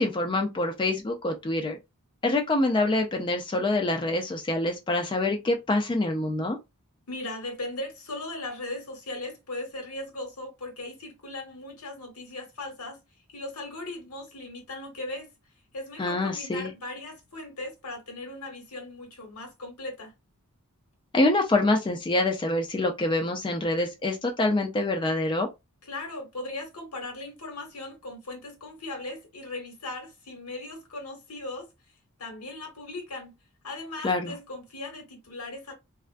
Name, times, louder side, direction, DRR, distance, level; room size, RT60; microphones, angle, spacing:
voice 1, 0.0-1.8 2.2-6.6 16.0-16.7 21.1-25.5 34.0-34.4, left 2 dB, 20° left, 0.4 m, -26 dB
voice 2, 7.1-13.0 13.3-15.3 15.7-20.1 25.8-31.7 32.2-33.4 33.6-35.7, left 2 dB, 80° left, 1.1 m, -38 dB
2.3 x 2.2 x 2.4 m
head